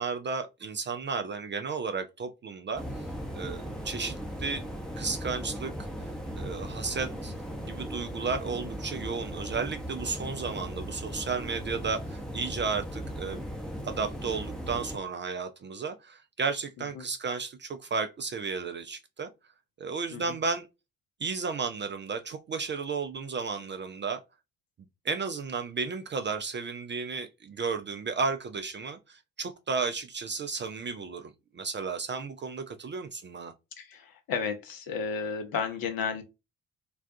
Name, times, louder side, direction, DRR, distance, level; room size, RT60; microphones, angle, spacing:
voice 1, 0.0-2.8 3.3-4.6 5.0-7.3 7.6-13.4 13.8-19.3 19.8-20.7 21.2-24.2 25.0-33.5, right 5 dB, 30° right, 0.4 m, -33 dB
sound 1, 2.7-15.0, equal, ahead, 0.7 m, -38 dB
voice 2, 33.8-36.2, left 6 dB, 55° left, 0.8 m, -33 dB
2.4 x 2.2 x 2.6 m
hypercardioid pair, 45°, 42 cm